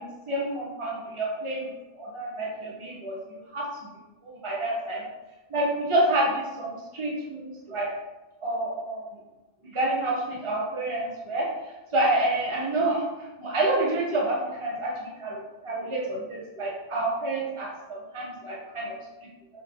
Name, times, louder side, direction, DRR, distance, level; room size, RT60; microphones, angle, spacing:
voice 1, 0.0-3.7 4.2-5.0 5.5-7.9 8.4-9.1 9.6-13.1 13.4-15.4 15.6-18.9 19.2-19.3, right 1 dB, 30° right, -4 dB, 1.2 m, -28 dB
6.2 x 4.7 x 3.9 m, 1.1 s
omnidirectional pair, 1.0 m